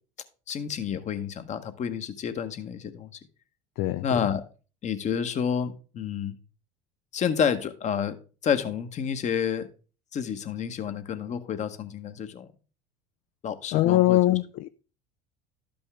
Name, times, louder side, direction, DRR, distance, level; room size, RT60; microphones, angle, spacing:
voice 1, 0.5-3.2 4.0-4.5 4.8-6.3 7.1-8.2 8.4-9.7 10.1-12.5 13.4-14.4, left 7 dB, 40° left, 1.1 m, -29 dB
voice 2, 13.7-14.7, left 15 dB, 55° left, 0.4 m, -22 dB
12.0 x 5.4 x 3.4 m
hypercardioid pair, 75°, 19 cm